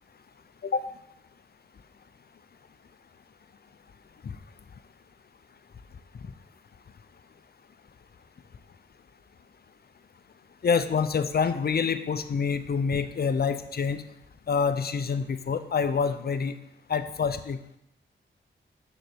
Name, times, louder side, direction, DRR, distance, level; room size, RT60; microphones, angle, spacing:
voice 1, 10.6-14.1 14.5-16.5 16.9-17.8, left 6 dB, 50° left, 11 dB, 0.6 m, -27 dB
6.4 x 4.1 x 6.3 m, 0.81 s
cardioid pair, 60°, 21 cm